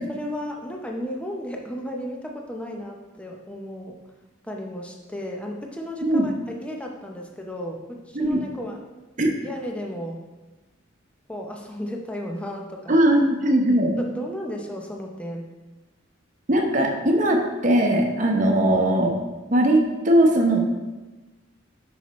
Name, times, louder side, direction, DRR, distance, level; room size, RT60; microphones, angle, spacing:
voice 1, 0.1-4.0 4.4-8.8 9.4-10.2 11.3-13.0 13.7-15.5, equal, 5° left, 1 dB, 0.7 m, -34 dB
voice 2, 8.1-8.4 9.2-9.4 12.9-13.9 16.5-19.2 19.5-20.6, right 1 dB, 40° right, 2 dB, 0.9 m, -19 dB
8.4 x 5.9 x 3.1 m, 1.2 s
head